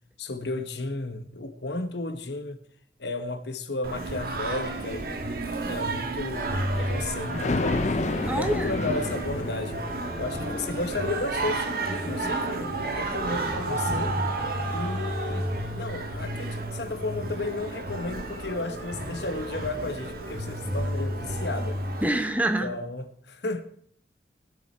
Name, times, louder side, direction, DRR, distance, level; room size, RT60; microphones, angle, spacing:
voice 1, 0.2-2.6 3.0-5.2 5.7-7.8 8.4-9.8 10.2-12.6 12.9-14.2 14.7-15.5 15.7-21.8 22.6-23.8, left 2 dB, 75° left, 1.1 m, -33 dB
Singing, 3.8-22.1, right 2 dB, 55° right, 1.6 m, -31 dB
Thunder, 6.7-14.9 15.3-15.4, left 3 dB, 40° left, 0.5 m, -33 dB
voice 2, 8.3-8.7 22.0-22.8, right 1 dB, 10° right, 0.8 m, -26 dB
19.5 x 7.1 x 4.4 m
head